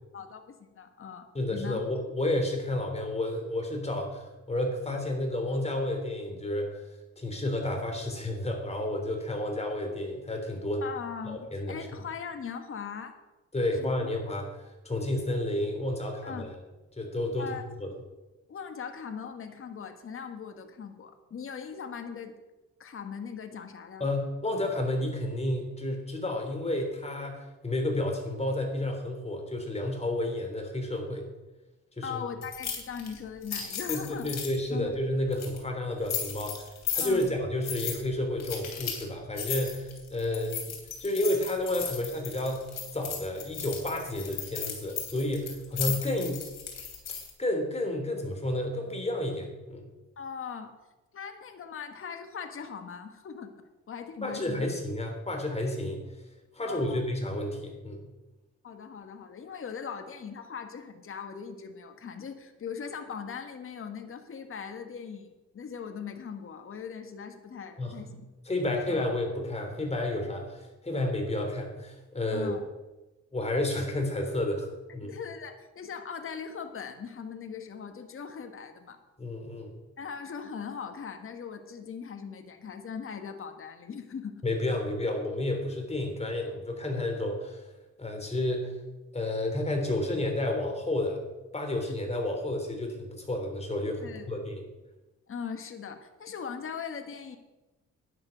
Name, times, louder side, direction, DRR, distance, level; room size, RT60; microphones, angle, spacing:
voice 1, 0.1-1.8 10.8-13.1 13.8-14.0 16.2-16.5 17.4-17.6 18.5-22.3 22.8-24.1 32.0-34.3 34.7-34.9 37.0-37.3 50.2-50.7 51.1-53.5 53.9-54.7 56.6-57.0 58.6-68.3 68.9-69.1 72.3-72.6 75.0-79.0 80.0-84.4 91.9-92.0 94.0-94.4 95.3-97.4, left 6 dB, 45° left, 7 dB, 1.5 m, -40 dB
voice 2, 1.3-6.8 7.2-10.8 11.2-11.8 13.5-16.5 17.0-17.5 17.8-17.9 24.0-31.3 32.0-32.2 33.9-40.7 41.0-46.5 47.4-49.9 54.2-56.0 56.5-58.0 67.8-67.9 68.4-72.5 73.3-74.7 74.9-75.1 79.2-79.7 84.4-87.7 88.0-88.8 89.1-91.2 91.5-94.7, left 1 dB, 20° left, 3 dB, 3.3 m, -31 dB
sound 1, 32.4-34.6 35.3-35.6 36.1-37.3 37.6-38.0 38.4-39.1 39.4-47.3, left 7 dB, 60° left, 3.2 m, -36 dB
11.5 x 10.0 x 5.2 m, 1.1 s
cardioid pair, 90°, 30 cm